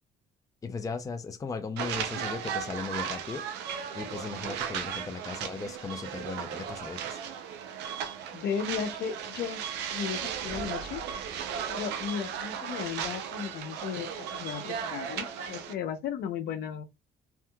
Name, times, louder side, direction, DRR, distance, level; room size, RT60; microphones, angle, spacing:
voice 1, 0.6-3.5 3.9-7.2, left 4 dB, 20° left, 0.5 m, -37 dB
sound 1, 1.8-15.7, right 8 dB, 90° right, 0.6 m, -36 dB
voice 2, 8.3-9.6 9.9-11.0 11.7-16.8, left 7 dB, 70° left, 0.7 m, -35 dB
Thunder, 9.9-12.5, right 2 dB, 50° right, 1.8 m, -48 dB
3.5 x 2.7 x 2.3 m
cardioid pair, 110°, 17 cm